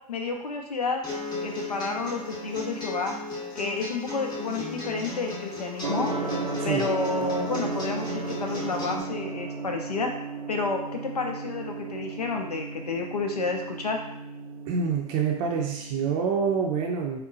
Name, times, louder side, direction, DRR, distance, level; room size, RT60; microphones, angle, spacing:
voice 1, 0.1-1.0 1.4-3.1 3.6-6.1 6.6-10.1 10.5-14.0, left 4 dB, 75° left, 3 dB, 0.6 m, -30 dB
sound 1, 1.0-9.0, left 2 dB, 20° left, 0.8 m, -35 dB
Gong, 5.8-16.6, right 4 dB, 90° right, 0.6 m, -35 dB
voice 2, 14.7-17.2, right 6 dB, 40° right, -1 dB, 0.5 m, -27 dB
4.2 x 2.0 x 2.6 m, 0.82 s
figure-of-eight pair, 80°, 20 cm